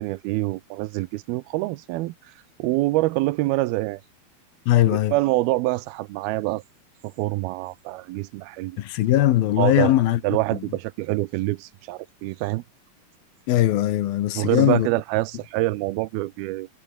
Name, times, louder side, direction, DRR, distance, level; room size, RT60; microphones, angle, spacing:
voice 1, 0.0-2.1 2.6-4.0 4.9-6.6 7.0-8.8 9.6-9.9 10.2-12.6 14.4-16.7, right 19 dB, 85° right, 2.6 m, -25 dB
voice 2, 4.7-5.1 8.8-10.2 10.5-10.6 13.5-14.9, left 13 dB, 80° left, 3.1 m, -20 dB
omnidirectional pair, 4.3 m